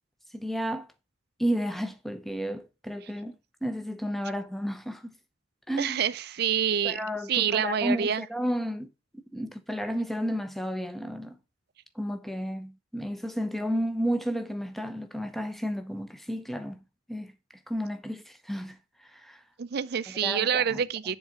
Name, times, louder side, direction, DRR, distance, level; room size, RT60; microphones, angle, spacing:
voice 1, 0.3-0.9 1.4-3.3 3.6-5.1 5.7-6.0 6.8-8.9 9.3-11.4 12.0-16.8 17.1-17.3 17.7-18.8 19.0-19.4 20.2-20.8, equal, ahead, 0.7 m, -32 dB
voice 2, 5.8-7.0 7.3-8.2 19.6-21.2, right 8 dB, 55° right, 0.5 m, -27 dB
7.3 x 3.9 x 6.5 m
head